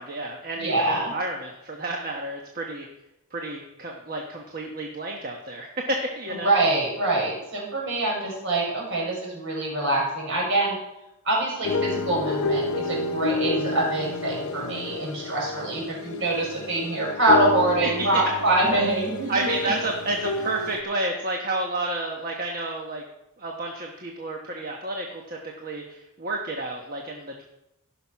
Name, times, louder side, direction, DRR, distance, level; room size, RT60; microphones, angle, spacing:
voice 1, 0.0-2.9 3.3-6.5 17.8-18.4 19.3-23.0 23.4-27.4, right 2 dB, 40° right, 1 dB, 1.2 m, -30 dB
voice 2, 0.6-1.1 6.3-10.8 11.2-19.7, right 2 dB, 60° right, -3 dB, 5.4 m, -25 dB
sound 1, 11.6-20.8, left 2 dB, 90° left, 0.8 m, -30 dB
15.0 x 6.2 x 5.8 m, 0.89 s
head